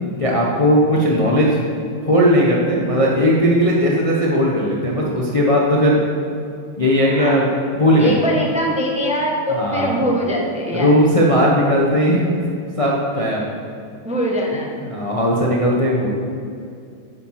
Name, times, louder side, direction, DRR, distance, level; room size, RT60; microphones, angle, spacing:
voice 1, 0.2-1.6 2.0-6.0 6.8-7.5 7.7-8.2 9.6-10.0 10.7-12.4 12.8-13.4 14.8-16.1, equal, 25° left, -3 dB, 0.9 m, -17 dB
voice 2, 8.0-10.9 14.0-14.8, equal, 5° right, -2 dB, 1.0 m, -22 dB
9.6 x 7.5 x 5.8 m, 2.4 s
omnidirectional pair, 2.0 m